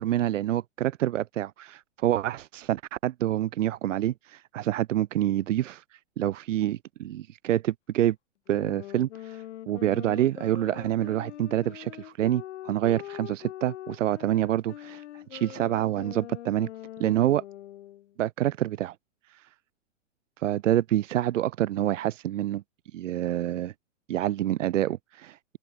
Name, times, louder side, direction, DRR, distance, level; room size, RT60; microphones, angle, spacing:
voice 1, 0.0-5.8 6.2-8.2 8.5-16.7 17.0-17.4 18.2-18.9 19.3-19.4 20.4-22.6 22.9-23.7 24.1-25.4, right 12 dB, 80° right, 0.7 m, -27 dB
sound 1, 8.5-18.1, left 13 dB, 65° left, 2.6 m, -43 dB
open air
hypercardioid pair, 125°, 37 cm